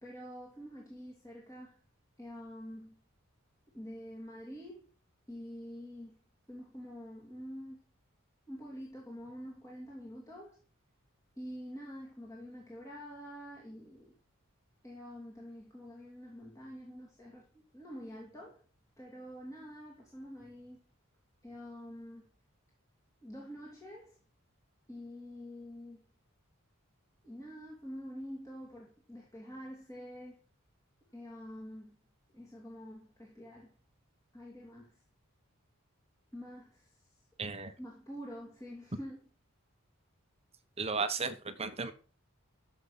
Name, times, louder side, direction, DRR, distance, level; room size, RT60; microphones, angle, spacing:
voice 1, 0.0-1.8 2.2-3.0 3.7-4.9 5.3-6.2 6.5-7.8 8.5-10.6 11.4-14.1 14.8-18.6 19.0-20.8 21.4-22.3 23.2-24.2 24.9-26.0 27.2-30.4 31.1-32.0 32.3-33.7 34.3-35.0 36.3-37.2 37.8-39.2, equal, 15° left, 2.9 m, -47 dB
voice 2, 37.4-37.7 40.8-41.9, right 4 dB, 30° right, 1.2 m, -34 dB
14.0 x 7.4 x 5.9 m
head